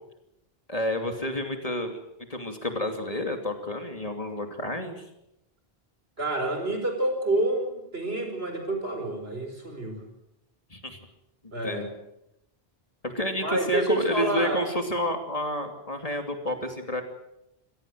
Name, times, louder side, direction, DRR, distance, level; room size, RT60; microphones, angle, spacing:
voice 1, 0.7-2.0 2.3-5.0 10.7-11.0 11.6-11.9 13.0-17.0, equal, 35° left, 5 dB, 2.9 m, -30 dB
voice 2, 6.2-10.0 11.5-11.9 13.4-14.6, right 1 dB, 75° right, 4 dB, 5.3 m, -28 dB
26.5 x 17.5 x 7.7 m, 0.85 s
omnidirectional pair, 1.0 m